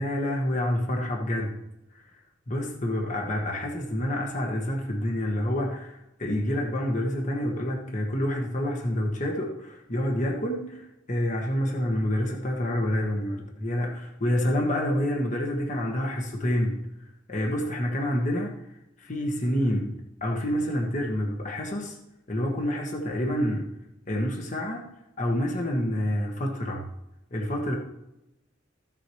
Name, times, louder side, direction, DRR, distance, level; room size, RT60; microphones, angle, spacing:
voice 1, 0.0-1.6 2.5-10.8 11.1-16.8 17.3-18.6 19.0-22.0 22.3-23.7 24.1-24.9 25.2-26.9 27.3-27.8, left 1 dB, 40° left, 0 dB, 1.4 m, -28 dB
14.5 x 7.5 x 3.2 m, 0.90 s
head